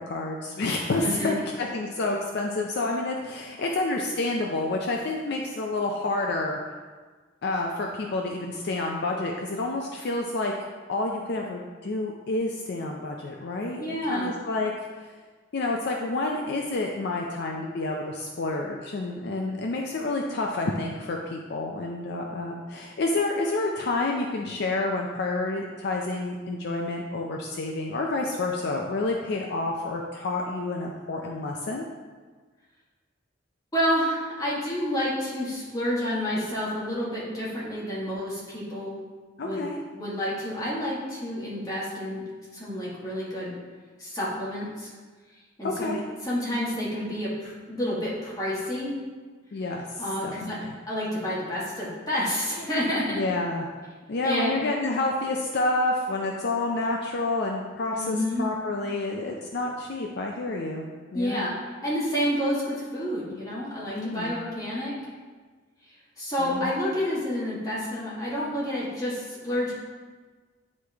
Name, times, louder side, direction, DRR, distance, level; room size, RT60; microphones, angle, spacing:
voice 1, 0.0-6.6 7.4-10.5 10.9-14.7 15.0-15.1 15.5-31.9 39.4-39.8 45.6-46.0 49.5-50.7 53.1-53.7 54.1-60.8 61.1-61.4 63.9-64.3 66.4-66.7, left 2 dB, 55° left, 0 dB, 0.5 m, -29 dB
voice 2, 1.0-1.4 13.8-14.3 33.7-39.0 39.4-39.6 39.9-42.2 42.5-43.5 44.0-44.9 45.6-45.9 46.2-48.9 50.0-50.6 50.9-53.2 54.2-54.6 57.9-58.5 61.1-61.6 61.8-64.9 66.2-69.7, equal, 20° left, -8 dB, 1.8 m, -29 dB
9.5 x 3.2 x 3.4 m, 1.4 s
head